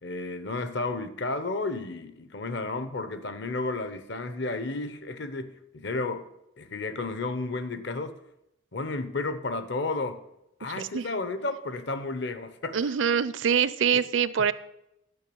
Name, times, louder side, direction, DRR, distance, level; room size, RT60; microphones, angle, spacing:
voice 1, 0.0-6.3 6.6-8.1 8.7-10.2 10.6-13.0 13.9-14.0, left 3 dB, 60° left, 0.9 m, -32 dB
voice 2, 10.8-11.1 12.7-14.5, right 7 dB, 65° right, 0.5 m, -24 dB
10.5 x 6.0 x 8.7 m
head